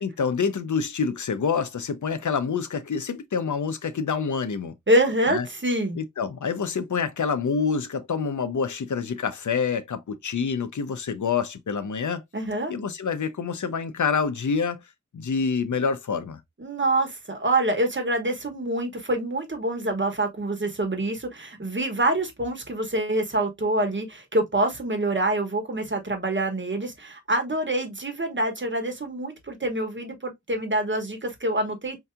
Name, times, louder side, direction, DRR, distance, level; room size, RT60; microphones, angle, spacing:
voice 1, 0.0-4.7 5.3-5.5 5.9-12.2 12.7-14.8 15.1-16.4, left 5 dB, 85° left, 0.6 m, -27 dB
voice 2, 4.9-6.0 12.3-12.7 16.6-32.0, right 1 dB, 40° right, 1.2 m, -26 dB
4.6 x 2.8 x 2.2 m
wide cardioid pair, 60°, 29 cm